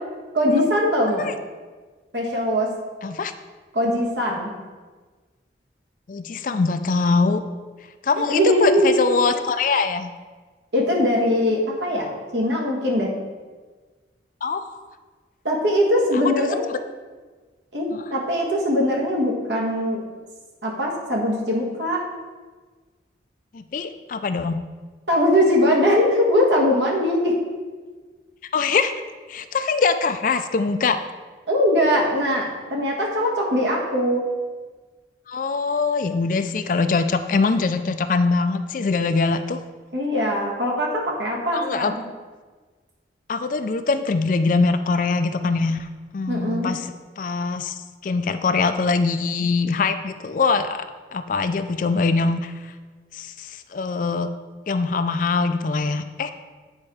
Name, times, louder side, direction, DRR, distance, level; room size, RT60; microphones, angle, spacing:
voice 1, 0.3-1.3 2.1-2.7 3.7-4.5 8.1-9.0 10.7-13.1 15.4-16.6 17.7-20.0 20.6-22.0 25.1-27.3 31.5-34.2 39.9-42.0 46.3-46.7, equal, 75° right, -2 dB, 1.7 m, -21 dB
voice 2, 3.0-3.3 6.1-7.4 8.0-10.1 14.4-14.8 16.1-16.4 17.9-18.0 23.5-24.6 28.5-28.9 29.3-31.0 35.3-39.6 41.5-41.9 43.3-45.9 46.1-47.8 48.0-50.8 51.1-52.5 53.1-54.3 54.7-56.3, left 4 dB, 45° left, 10 dB, 0.4 m, -23 dB
8.8 x 4.4 x 4.8 m, 1.4 s
head